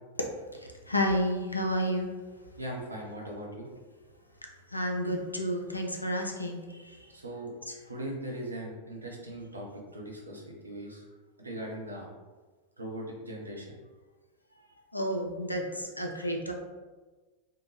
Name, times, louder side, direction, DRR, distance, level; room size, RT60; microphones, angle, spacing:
voice 1, 0.9-2.1 4.7-6.6 14.9-16.5, equal, 85° left, 2 dB, 0.4 m, -30 dB
voice 2, 2.6-3.7 7.1-7.5 7.9-9.7 9.9-11.0 11.4-12.1 12.8-13.8, right 1 dB, 80° right, -2 dB, 0.6 m, -39 dB
2.7 x 2.2 x 3.0 m, 1.3 s
figure-of-eight pair, 90°, 0 cm